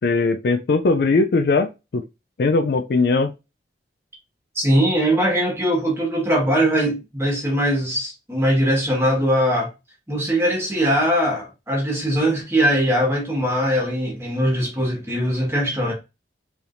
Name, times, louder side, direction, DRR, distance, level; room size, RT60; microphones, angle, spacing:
voice 1, 0.0-2.1 2.4-3.3, left 3 dB, 55° left, 0.4 m, -19 dB
voice 2, 4.5-9.7 10.1-15.9, equal, 15° right, 1.5 m, -21 dB
4.8 x 3.4 x 2.6 m
head